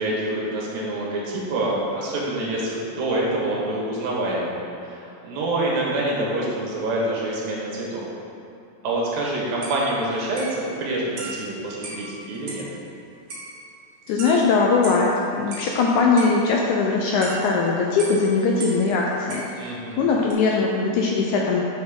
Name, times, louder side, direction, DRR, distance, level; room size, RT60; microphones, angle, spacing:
voice 1, 0.0-8.1 8.8-12.7 19.6-20.1, right 1 dB, 85° right, -4 dB, 3.3 m, -26 dB
sound 1, 9.3-9.4 9.6-12.8 13.3-15.2 15.5-18.9 19.3-19.9 20.3-20.4, right 2 dB, 60° right, 1.1 m, -38 dB
voice 2, 14.1-15.1 15.4-21.6, left 4 dB, 80° left, -1 dB, 1.8 m, -21 dB
9.6 x 6.3 x 3.7 m, 2.6 s
omnidirectional pair, 4.0 m